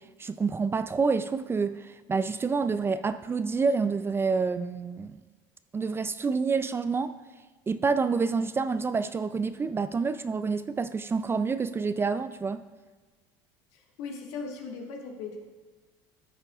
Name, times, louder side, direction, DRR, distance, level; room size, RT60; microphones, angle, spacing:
voice 1, 0.0-5.2 5.7-7.2 7.7-12.6, right 4 dB, 20° right, 12 dB, 0.4 m, -28 dB
voice 2, 13.7-15.4, left 4 dB, 70° left, 1 dB, 1.7 m, -38 dB
13.0 x 7.4 x 2.4 m, 1.3 s
supercardioid pair, 90°, 11 cm